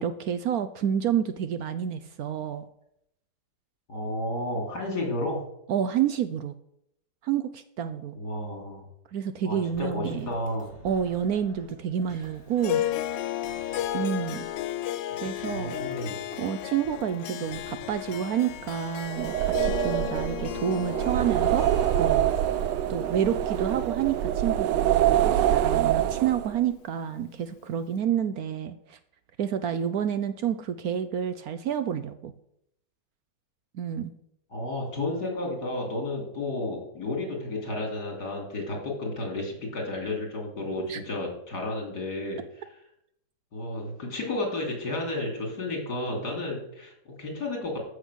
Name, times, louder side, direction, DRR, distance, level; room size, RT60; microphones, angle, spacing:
voice 1, 0.0-2.6 5.7-6.5 7.2-8.2 9.1-10.3 10.8-12.8 13.9-14.5 15.2-15.8 16.4-21.7 22.0-22.3 22.9-29.0 29.4-32.3 33.7-34.1 40.8-41.0, right 9 dB, 65° right, 11 dB, 1.0 m, -29 dB
voice 2, 3.9-5.4 8.2-8.9 9.4-10.7 15.5-16.2 34.5-42.4 43.5-47.8, left 2 dB, 65° left, 1 dB, 3.6 m, -32 dB
sound 1, 9.7-24.6, right 2 dB, 35° right, 2.0 m, -49 dB
Harp, 12.6-25.1, left 13 dB, 85° left, 1.3 m, -34 dB
sound 2, 19.0-26.6, right 12 dB, 85° right, 1.2 m, -25 dB
14.0 x 6.3 x 6.3 m, 0.77 s
omnidirectional pair, 1.9 m